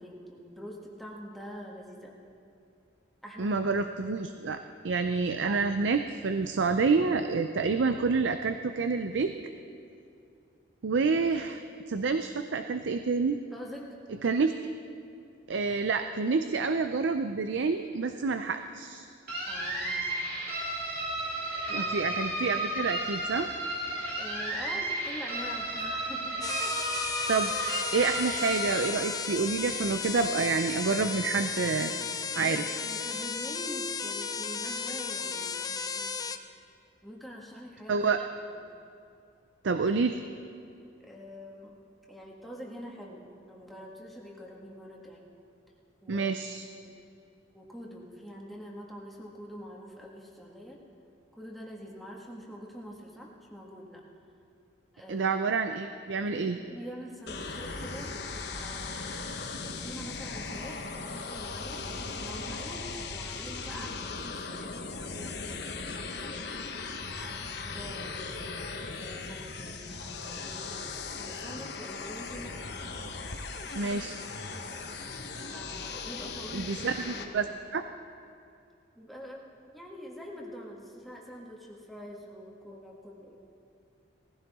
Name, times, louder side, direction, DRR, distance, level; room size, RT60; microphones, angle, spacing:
voice 1, 0.0-2.2 3.2-3.6 13.5-14.0 19.5-20.1 21.7-22.1 24.2-26.8 32.3-36.3 37.0-38.6 41.0-41.8 42.1-45.2 46.0-46.3 46.8-47.0 47.5-50.8 51.3-54.0 54.9-55.3 56.1-59.1 59.6-65.7 66.3-68.5 69.0-74.0 74.4-74.8 75.5-77.4 79.0-79.4 79.7-83.4, equal, ahead, -3 dB, 1.7 m, -45 dB
voice 2, 3.4-9.3 10.8-11.6 11.9-13.4 14.2-14.5 15.5-19.1 21.7-23.5 27.3-27.5 27.9-31.9 32.4-32.6 37.9-38.2 39.6-40.2 46.1-46.7 55.1-56.6 73.8-74.2 76.5-77.5 77.7-77.8, right 4 dB, 75° right, 8 dB, 0.5 m, -28 dB
sound 1, 19.3-28.9, right 1 dB, 55° right, 3.2 m, -33 dB
sound 2, 26.4-36.4, left 6 dB, 20° left, 0.4 m, -34 dB
sound 3, 57.3-77.2, left 4 dB, 60° left, 1.1 m, -38 dB
19.5 x 15.0 x 3.6 m, 2.5 s
head